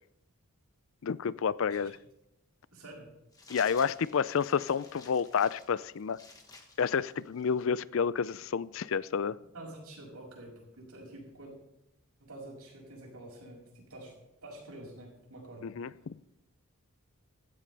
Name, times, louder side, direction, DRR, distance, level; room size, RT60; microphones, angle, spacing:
voice 1, 1.0-2.0 3.5-6.2 6.8-9.4 15.6-16.2, left 6 dB, 60° left, 19 dB, 0.4 m, -30 dB
voice 2, 2.7-3.1 9.5-11.5 12.2-14.2 14.4-15.7, right 1 dB, 90° right, -2 dB, 6.2 m, -48 dB
sound 1, 3.3-7.8, left 3 dB, 15° left, 1.4 m, -54 dB
16.0 x 14.0 x 3.4 m, 0.89 s
head